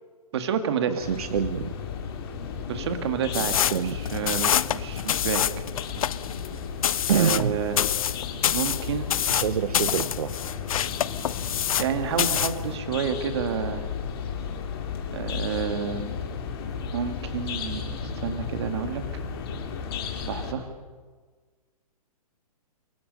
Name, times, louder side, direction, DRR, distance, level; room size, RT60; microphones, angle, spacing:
voice 1, 0.3-1.0 2.7-5.4 7.1-7.8 8.5-9.1 11.8-13.8 15.1-16.1 16.9-19.0 20.3-20.7, right 7 dB, 45° right, 7 dB, 1.9 m, -29 dB
voice 2, 0.9-1.7 3.7-4.0 7.1-7.6 8.0-8.2 9.3-10.3, right 8 dB, 70° right, 11 dB, 0.9 m, -26 dB
sound 1, 1.0-20.5, left 6 dB, 40° left, 2.7 m, -34 dB
sound 2, 3.3-11.9 12.2-12.6, left 10 dB, 65° left, 0.5 m, -26 dB
25.0 x 20.5 x 5.4 m, 1.5 s
hypercardioid pair, 165°, 20 cm